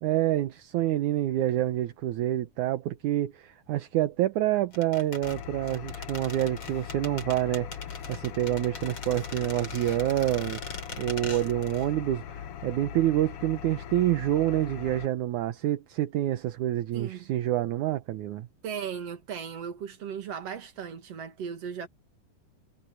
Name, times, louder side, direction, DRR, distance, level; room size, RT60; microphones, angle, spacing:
voice 1, 0.0-18.5, right 13 dB, 75° right, 2.4 m, -27 dB
sound 1, 4.7-11.9 12.2-12.3, left 3 dB, 35° left, 5.1 m, -41 dB
Engine, 5.2-15.1, left 9 dB, 65° left, 1.5 m, -40 dB
voice 2, 16.9-17.3 18.6-21.9, right 7 dB, 50° right, 3.2 m, -37 dB
omnidirectional pair, 3.7 m